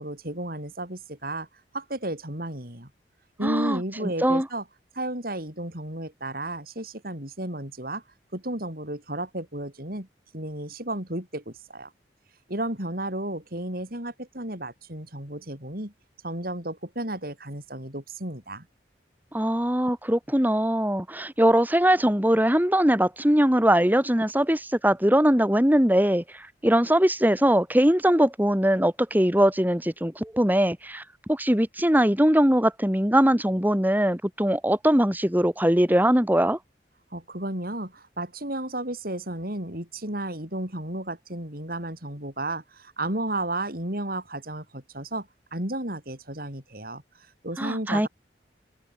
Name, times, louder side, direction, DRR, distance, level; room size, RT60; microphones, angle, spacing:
voice 1, 0.0-1.5 1.7-2.9 3.4-4.7 4.9-8.0 8.3-10.1 10.3-11.9 12.5-15.9 16.2-18.7 37.1-48.1, right 1 dB, 55° right, 7.0 m, -33 dB
voice 2, 3.4-3.8 4.2-4.5 19.3-26.2 26.6-31.0 31.3-36.6 47.6-48.1, equal, 10° right, 2.8 m, -21 dB
head